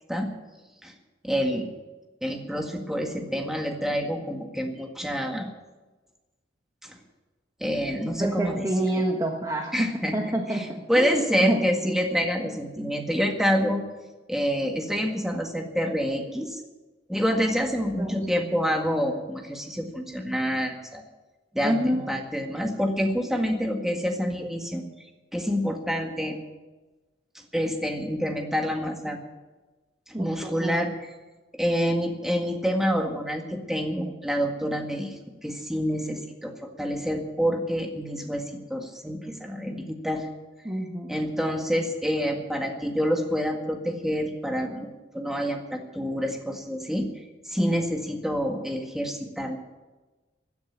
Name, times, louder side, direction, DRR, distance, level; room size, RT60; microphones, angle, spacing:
voice 1, 1.2-1.7 2.2-5.5 6.8-7.0 7.6-8.6 9.7-10.2 10.5-13.8 14.3-16.6 17.1-21.0 21.5-24.8 25.3-26.4 27.5-29.2 30.1-31.1 31.5-35.1 35.4-40.3 41.1-47.1 47.4-49.6, equal, ahead, 2 dB, 1.8 m, -27 dB
voice 2, 8.2-11.7 12.4-12.5 18.0-18.2 21.6-22.0 30.1-30.8 40.6-41.2 47.6-47.7, right 1 dB, 20° right, 1 dB, 1.3 m, -28 dB
16.5 x 10.5 x 7.3 m, 1.2 s
head